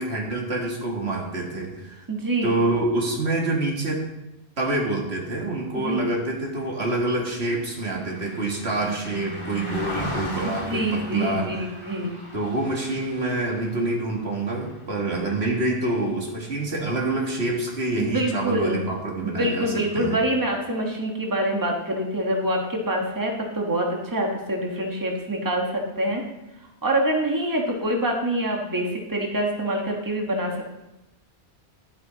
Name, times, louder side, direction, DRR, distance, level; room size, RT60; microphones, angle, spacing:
voice 1, 0.0-2.0 2.4-4.0 4.6-11.5 12.3-20.2, right 2 dB, 80° right, -1 dB, 2.2 m, -26 dB
voice 2, 2.1-2.6 5.7-6.0 10.4-12.1 18.0-18.8 19.2-26.2 26.8-30.7, right 1 dB, 20° right, 1 dB, 1.4 m, -25 dB
Car passing by, 6.3-15.9 16.3-16.5, left 1 dB, 30° left, 2.0 m, -38 dB
11.0 x 8.8 x 4.0 m, 0.93 s
omnidirectional pair, 1.1 m